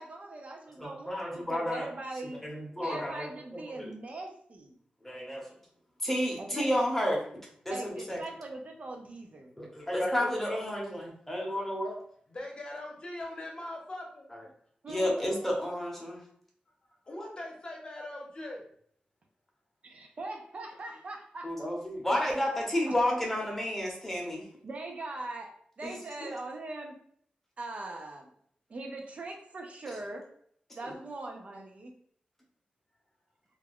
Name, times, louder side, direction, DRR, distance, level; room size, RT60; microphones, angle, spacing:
voice 1, 0.0-2.4 2.8-4.8 6.4-6.6 7.7-9.5 14.8-15.5 19.8-21.5 22.8-22.9 24.6-25.5 25.8-27.0 27.6-28.3 28.7-30.2 30.7-31.9, right 2 dB, 50° right, 2 dB, 0.5 m, -41 dB
voice 2, 0.8-1.9 2.3-3.3 3.8-3.9 5.0-5.5 6.0-7.2 7.6-8.2 9.6-12.0 14.9-16.2 21.4-24.4 25.8-25.9 26.2-26.3, left 1 dB, 10° left, -2 dB, 0.8 m, -31 dB
voice 3, 12.3-14.2 17.1-18.7, left 1 dB, 40° left, -2 dB, 0.8 m, -41 dB
2.4 x 2.2 x 3.4 m, 0.63 s
wide cardioid pair, 120°, 3 cm